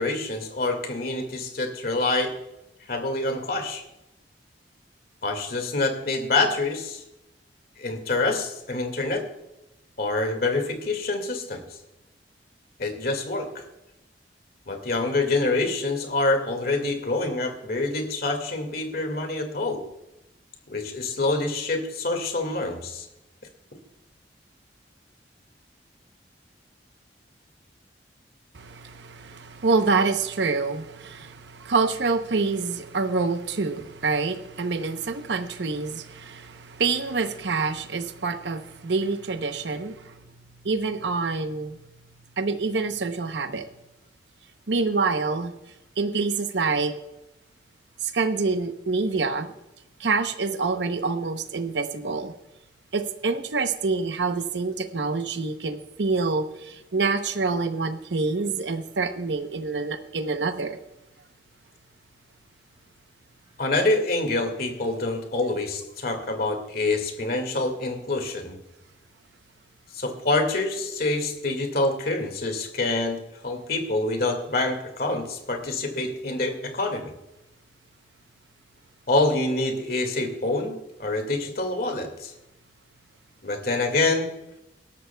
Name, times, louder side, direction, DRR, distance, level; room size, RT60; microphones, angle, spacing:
voice 1, 0.0-2.3 2.9-3.8 5.2-7.0 7.8-9.2 10.0-11.6 12.8-13.6 14.7-19.8 20.7-23.1 63.6-68.6 69.9-77.1 79.1-82.3 83.4-84.3, left 2 dB, 55° left, 5 dB, 2.0 m, -26 dB
voice 2, 28.5-40.2 40.6-41.8 42.4-43.6 44.7-45.5 46.0-46.9 48.0-49.5 50.0-52.3 52.9-60.8, right 4 dB, 75° right, 8 dB, 0.8 m, -26 dB
18.5 x 12.5 x 2.3 m, 0.91 s
head